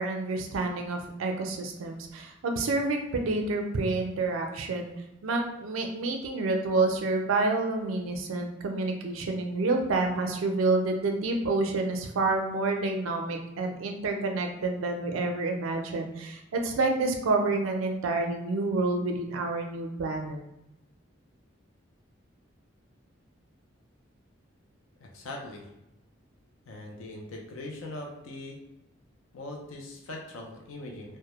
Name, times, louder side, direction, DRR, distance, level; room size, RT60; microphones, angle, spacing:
voice 1, 0.0-4.9 5.2-20.4, right 3 dB, 85° right, 3 dB, 0.4 m, -28 dB
voice 2, 25.0-25.7 26.7-28.6 29.3-31.2, left 2 dB, 85° left, 0 dB, 0.5 m, -41 dB
2.2 x 2.0 x 2.9 m, 0.89 s
head